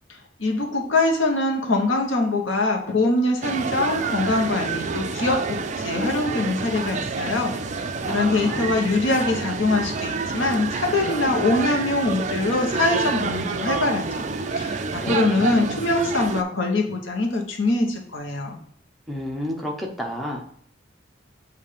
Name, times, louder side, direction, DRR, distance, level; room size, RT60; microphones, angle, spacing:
voice 1, 0.1-18.6, left 2 dB, 85° left, 2 dB, 1.2 m, -23 dB
sound 1, 3.4-16.4, right 4 dB, 40° right, 0.4 m, -28 dB
voice 2, 8.1-8.9 14.9-15.5 19.1-20.4, equal, ahead, -1 dB, 0.9 m, -32 dB
7.7 x 2.7 x 5.1 m, 0.63 s
head